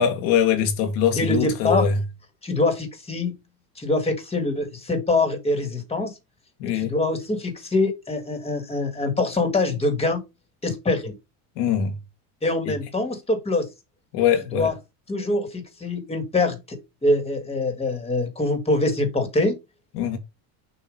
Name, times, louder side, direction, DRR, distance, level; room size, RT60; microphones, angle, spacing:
voice 1, 0.0-2.0 6.6-6.9 11.6-12.0 12.6-12.8 14.1-14.7 19.9-20.2, left 8 dB, 85° left, 1.6 m, -22 dB
voice 2, 1.2-1.9 2.4-3.3 3.8-6.1 6.7-10.2 10.6-11.1 12.4-13.7 14.5-14.7 15.1-19.5, left 2 dB, 15° left, 1.7 m, -24 dB
6.7 x 2.8 x 5.2 m
cardioid pair, 135°, 47 cm